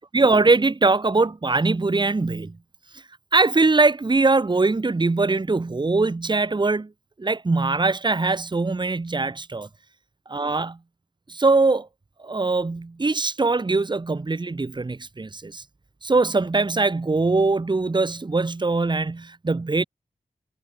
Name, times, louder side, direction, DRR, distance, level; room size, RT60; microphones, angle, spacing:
voice 1, 0.1-2.6 2.9-3.0 3.3-6.9 7.2-9.7 10.3-10.8 11.3-11.9 12.2-15.6 16.0-19.8, right 3 dB, 30° right, 1.7 m, -22 dB
wide cardioid pair, 75°, 14 cm